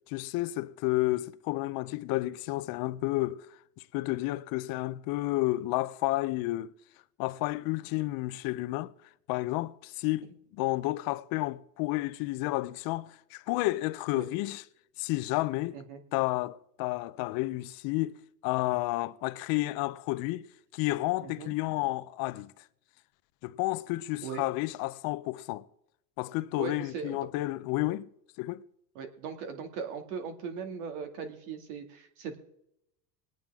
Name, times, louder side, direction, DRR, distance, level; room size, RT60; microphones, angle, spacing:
voice 1, 0.1-3.5 3.8-6.7 7.2-8.9 9.3-14.6 15.0-15.8 16.1-18.2 18.4-20.5 20.7-22.5 23.4-25.6 26.2-28.1 28.4-28.6, left 19 dB, 50° left, 0.6 m, -31 dB
voice 2, 21.2-21.5 24.2-24.4 26.6-27.2 29.0-32.4, right 6 dB, 75° right, 2.3 m, -39 dB
21.0 x 9.1 x 3.5 m
supercardioid pair, 145°, 45 cm